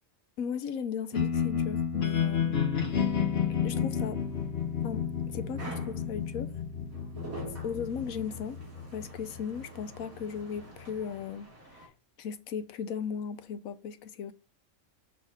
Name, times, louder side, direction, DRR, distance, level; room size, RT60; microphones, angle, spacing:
voice 1, 0.4-2.6 3.6-4.2 4.8-6.5 7.6-8.6 8.9-11.9 12.2-14.3, left 7 dB, 85° left, 1.1 m, -37 dB
sound 1, 1.1-11.2, left 7 dB, 50° left, 1.1 m, -32 dB
sound 2, 4.1-11.9, right 2 dB, 85° right, 2.6 m, -47 dB
6.6 x 3.5 x 5.5 m
omnidirectional pair, 1.4 m